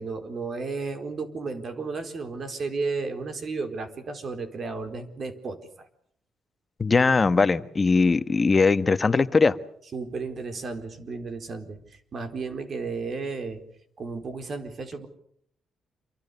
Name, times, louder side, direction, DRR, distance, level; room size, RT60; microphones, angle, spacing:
voice 1, 0.0-5.9 9.9-13.6 14.0-15.1, right 4 dB, 45° right, 8 dB, 4.3 m, -33 dB
voice 2, 6.8-9.6, left 4 dB, 30° left, 12 dB, 1.4 m, -20 dB
28.0 x 24.0 x 6.9 m, 0.66 s
cardioid pair, 90°, 0 cm